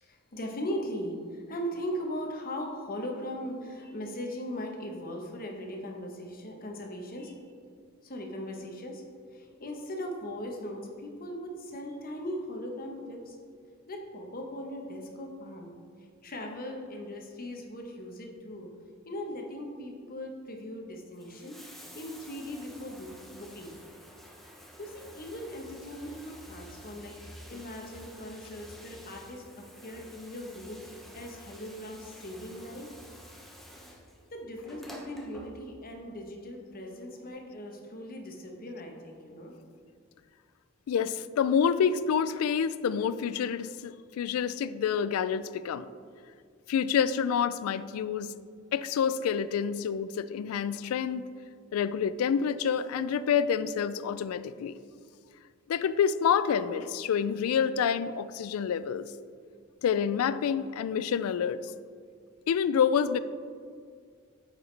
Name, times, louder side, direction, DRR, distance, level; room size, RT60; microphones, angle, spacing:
voice 1, 0.0-7.4 8.0-9.0 9.3-13.4 13.9-15.7 16.2-18.7 19.0-21.6 21.9-23.8 24.8-32.9 34.3-39.5, equal, 45° left, 2 dB, 0.9 m, -39 dB
Bathtub (filling or washing), 21.1-36.0 37.1-37.2, equal, ahead, 0.6 m, -50 dB
voice 2, 40.9-45.9 46.7-48.3 48.7-51.3 51.7-54.8 55.7-59.1 59.8-61.6 62.5-63.2, left 7 dB, 90° left, 15 dB, 0.3 m, -28 dB
8.8 x 4.9 x 3.2 m, 2.1 s
head